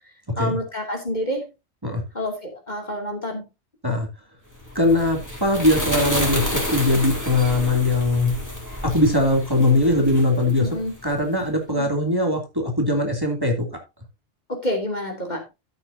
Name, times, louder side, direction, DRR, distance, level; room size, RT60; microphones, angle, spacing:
voice 1, 0.4-1.5 2.1-3.5 10.6-10.9 11.7-11.9 14.5-15.4, left 1 dB, 35° left, 2 dB, 2.9 m, -28 dB
sound 1, 4.6-11.2, left 1 dB, 15° left, 3.8 m, -30 dB
voice 2, 4.7-8.3 8.9-10.7 11.0-13.7, left 1 dB, 15° right, 2 dB, 2.7 m, -20 dB
13.5 x 8.7 x 2.7 m, 0.24 s
omnidirectional pair, 1.3 m